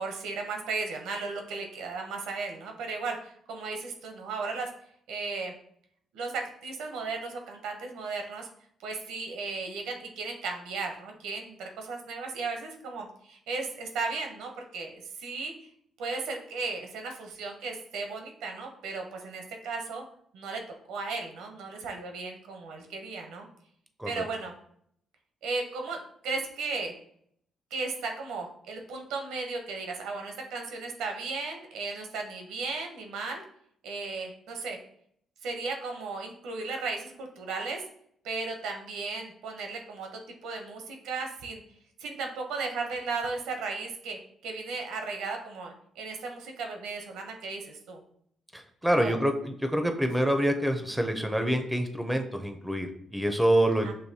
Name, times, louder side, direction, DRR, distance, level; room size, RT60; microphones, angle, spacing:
voice 1, 0.0-4.7 5.1-5.5 6.1-8.5 8.8-15.7 16.0-20.0 20.3-20.6 20.9-23.5 24.0-24.5 25.4-26.9 27.7-33.4 33.8-34.8 35.4-37.8 38.2-41.6 42.0-48.0 48.9-49.2 50.2-50.3 53.8-53.9, right 4 dB, 90° right, 3 dB, 0.8 m, -35 dB
voice 2, 48.5-53.9, right 1 dB, ahead, 5 dB, 0.6 m, -26 dB
6.3 x 2.6 x 2.8 m, 0.67 s
cardioid pair, 90°, 0 cm